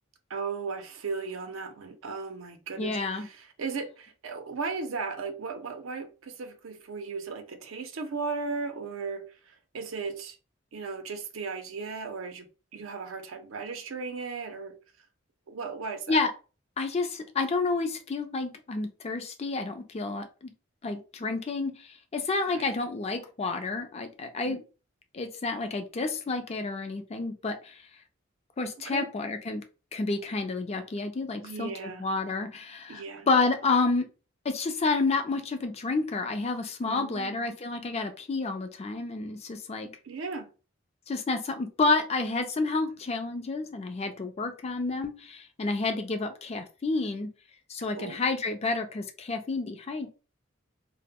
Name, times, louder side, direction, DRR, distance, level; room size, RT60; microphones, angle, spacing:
voice 1, 0.3-10.4 10.7-12.5 12.7-14.7 15.5-16.2 21.2-21.4 22.5-22.7 24.4-24.6 28.9-29.1 31.4-32.1 32.9-33.3 36.8-37.6 40.0-40.5 47.8-48.2, right 4 dB, 80° right, 0.5 m, -36 dB
voice 2, 2.8-3.3 16.1-16.3 16.8-20.5 20.8-24.6 25.1-27.8 28.6-29.6 29.9-34.1 34.4-39.9 41.1-47.3 47.7-50.1, left 3 dB, 30° left, 0.4 m, -30 dB
2.1 x 2.0 x 3.5 m
head